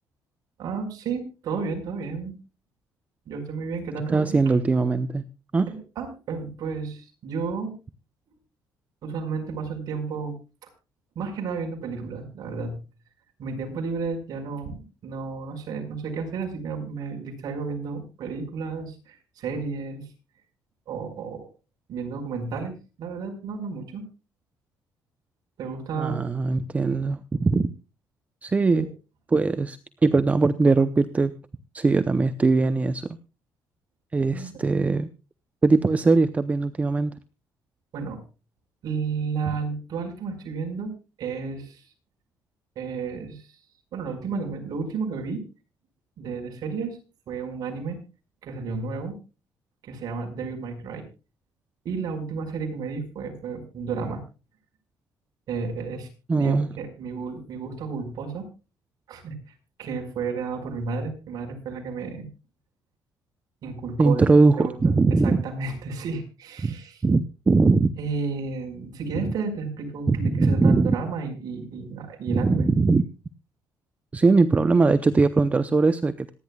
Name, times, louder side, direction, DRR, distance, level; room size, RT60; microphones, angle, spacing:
voice 1, 0.6-2.4 3.3-4.4 5.7-7.7 9.0-10.4 11.1-12.8 13.4-20.1 20.9-21.5 21.9-24.0 25.6-26.2 28.7-28.9 34.3-34.5 37.9-38.2 38.8-41.8 42.7-43.4 43.9-45.4 46.2-47.0 47.3-48.0 48.4-49.2 49.8-51.0 51.8-54.2 55.5-56.1 56.3-58.4 59.1-59.4 59.8-62.3 63.6-64.2 64.6-67.0 68.0-72.7, right 4 dB, 60° right, 3 dB, 4.9 m, -32 dB
voice 2, 4.1-5.2 5.5-5.7 26.0-27.7 28.4-28.9 29.3-31.3 31.7-33.1 34.1-35.1 35.6-37.1 56.3-56.7 64.0-65.4 66.6-66.7 67.0-67.9 70.1-70.9 72.3-73.0 74.1-76.3, right 3 dB, 20° right, 12 dB, 0.6 m, -21 dB
26.0 x 10.5 x 2.3 m, 0.31 s
cardioid pair, 120°, 7 cm